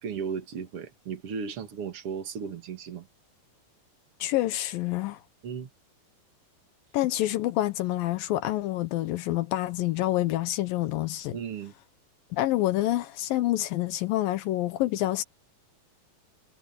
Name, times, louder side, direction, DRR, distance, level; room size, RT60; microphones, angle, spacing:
voice 1, 0.0-3.1 5.4-5.7 11.3-11.7, right 6 dB, 45° right, 2.7 m, -35 dB
voice 2, 4.2-5.2 6.9-11.4 12.3-15.2, left 15 dB, 85° left, 2.7 m, -27 dB
omnidirectional pair, 4.0 m